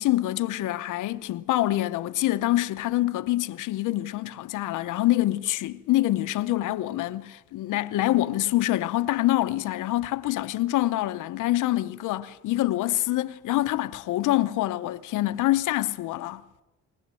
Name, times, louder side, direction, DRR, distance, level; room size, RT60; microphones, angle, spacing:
voice 1, 0.0-16.4, left 16 dB, 85° left, 0.8 m, -26 dB
21.0 x 19.5 x 7.6 m
cardioid pair, 90°, 30 cm